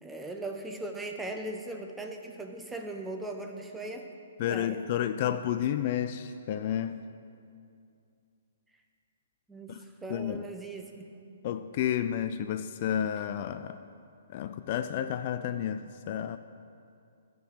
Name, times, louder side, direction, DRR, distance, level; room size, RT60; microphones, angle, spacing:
voice 1, 0.0-4.1 4.4-4.9 9.5-11.1, right 2 dB, 5° right, 3 dB, 0.8 m, -39 dB
voice 2, 4.4-7.0 9.7-9.8 10.1-10.5 11.4-13.8 14.3-16.4, left 10 dB, 40° left, 10 dB, 0.3 m, -31 dB
12.5 x 5.2 x 6.3 m, 2.5 s
figure-of-eight pair, 125°, 0 cm